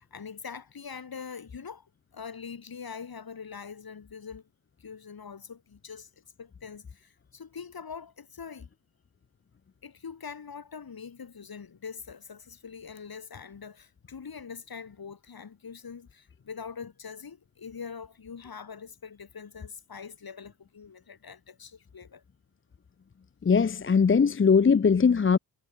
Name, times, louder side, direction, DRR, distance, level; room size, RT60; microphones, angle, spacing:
voice 1, 0.0-4.5 4.8-6.1 6.4-8.7 9.8-22.2, left 6 dB, 55° left, 4.2 m, -43 dB
voice 2, 23.4-25.4, left 5 dB, 30° left, 0.7 m, -20 dB
cardioid pair, 60°, 44 cm